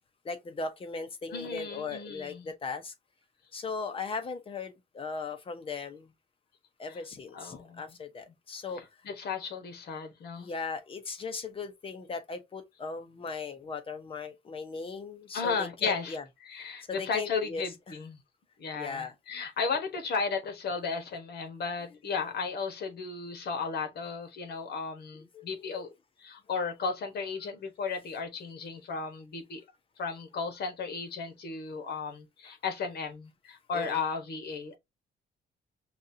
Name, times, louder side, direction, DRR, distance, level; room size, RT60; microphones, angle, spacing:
voice 1, 0.2-2.9 3.5-6.1 6.8-8.8 10.4-16.3 16.9-18.0 18.7-19.2 21.8-21.9 25.3-25.9 32.4-32.5 33.7-34.0, left 4 dB, 30° left, 0.7 m, -38 dB
voice 2, 1.3-2.5 6.9-7.0 7.3-7.9 8.7-10.5 15.3-16.2 16.4-18.2 18.6-25.9 26.2-29.6 30.0-34.8, left 5 dB, 60° left, 1.2 m, -34 dB
5.3 x 2.4 x 2.7 m
cardioid pair, 165°, 19 cm